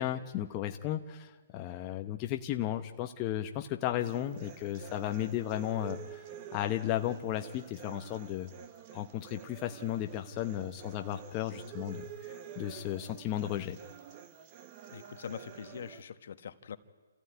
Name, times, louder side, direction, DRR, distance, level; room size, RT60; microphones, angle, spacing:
voice 1, 0.0-6.2 6.5-8.5 8.9-13.8, left 12 dB, 25° left, 5 dB, 1.0 m, -34 dB
sound 1, 4.0-16.0, right 9 dB, 30° right, 1.4 m, -49 dB
voice 2, 14.9-16.8, left 8 dB, 60° left, 11 dB, 1.2 m, -43 dB
28.0 x 15.0 x 9.5 m, 1.5 s
hypercardioid pair, 155°, 0 cm